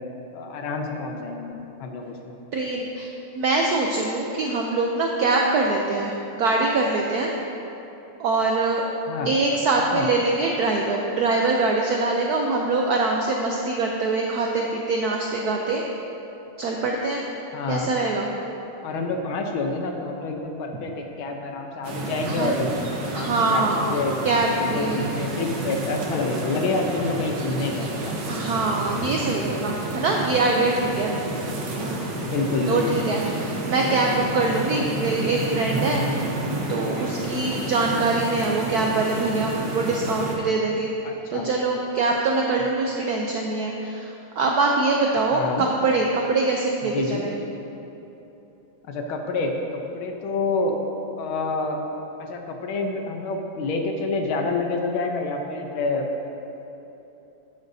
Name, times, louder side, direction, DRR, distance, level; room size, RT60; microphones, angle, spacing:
voice 1, 0.3-2.4 9.1-9.3 9.9-10.1 17.5-17.9 18.8-24.1 24.5-28.1 31.6-32.9 41.0-41.5 45.3-45.7 46.9-47.2 48.9-50.8 51.2-51.8 52.2-56.1, left 3 dB, 75° left, 3 dB, 1.6 m, -28 dB
voice 2, 2.5-3.1 3.3-7.3 8.2-8.8 9.2-15.8 16.6-17.2 17.7-18.3 22.3-22.5 23.1-24.0 24.2-25.1 28.3-31.1 32.7-36.0 36.7-40.9 41.3-47.3, right 3 dB, 80° right, 0 dB, 0.8 m, -23 dB
sound 1, 21.8-40.4, right 2 dB, 60° right, 1.6 m, -30 dB
11.5 x 9.0 x 2.7 m, 3.0 s
omnidirectional pair, 2.4 m